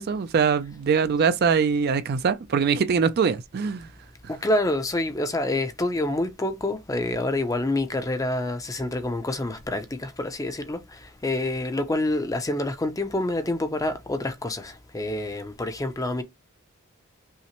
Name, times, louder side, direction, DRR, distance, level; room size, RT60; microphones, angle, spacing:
voice 1, 0.0-3.9, right 6 dB, 45° right, 0.3 m, -23 dB
voice 2, 4.3-16.2, left 1 dB, 15° left, 0.5 m, -27 dB
5.6 x 2.1 x 2.9 m
head